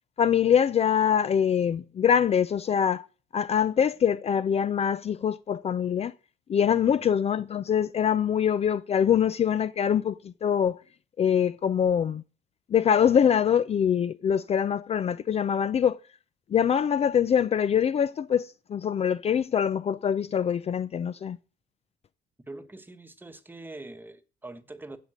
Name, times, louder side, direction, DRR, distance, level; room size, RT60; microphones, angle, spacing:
voice 1, 0.2-3.1 3.3-6.1 6.5-10.8 11.2-12.2 12.7-16.0 16.5-21.4, left 8 dB, 40° left, 0.5 m, -24 dB
voice 2, 22.5-25.0, right 2 dB, 10° right, 1.3 m, -44 dB
15.5 x 5.2 x 7.6 m
cardioid pair, 110°, 17 cm